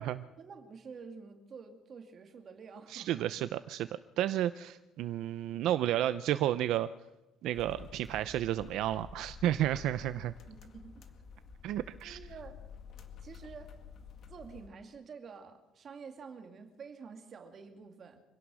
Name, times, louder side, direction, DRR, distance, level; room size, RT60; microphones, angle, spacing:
voice 1, 0.0-3.3 10.5-11.0 12.0-12.6 13.2-13.7 14.3-18.2, right 5 dB, 35° right, 6 dB, 2.4 m, -49 dB
voice 2, 2.9-3.9 4.2-6.9 7.4-10.3 11.6-12.2, right 12 dB, 70° right, 13 dB, 0.6 m, -32 dB
ships cabin, 7.5-14.7, left 6 dB, 40° left, 2.0 m, -50 dB
25.5 x 17.5 x 6.3 m, 1.0 s
cardioid pair, 175°, 0 cm